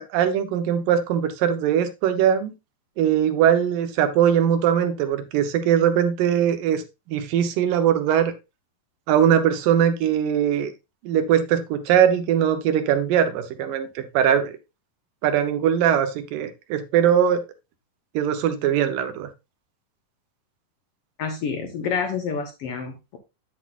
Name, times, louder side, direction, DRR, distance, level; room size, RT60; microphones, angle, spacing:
voice 1, 0.0-2.5 3.0-6.8 7.1-8.3 9.1-10.7 11.0-14.5 15.2-17.4 18.1-19.3, right 9 dB, 75° right, 8 dB, 2.5 m, -21 dB
voice 2, 21.2-23.2, left 6 dB, 80° left, 5 dB, 1.3 m, -28 dB
8.8 x 8.2 x 2.5 m, 0.25 s
omnidirectional pair, 4.0 m